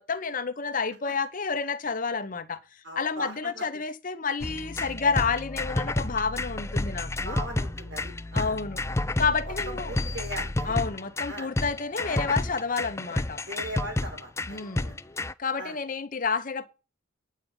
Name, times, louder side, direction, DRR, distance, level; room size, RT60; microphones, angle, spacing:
voice 1, 0.0-2.6 3.0-7.4 8.3-8.8 9.2-9.9 10.6-13.4 14.5-14.9 15.4-16.7, left 5 dB, 40° left, 1.0 m, -29 dB
voice 2, 2.8-3.7 7.2-8.6 9.4-10.8 11.3-11.5 13.5-14.9 15.6-15.8, right 1 dB, 65° right, 5.3 m, -39 dB
sound 1, 4.4-15.3, left 2 dB, 15° left, 0.5 m, -30 dB
9.5 x 8.4 x 5.5 m
head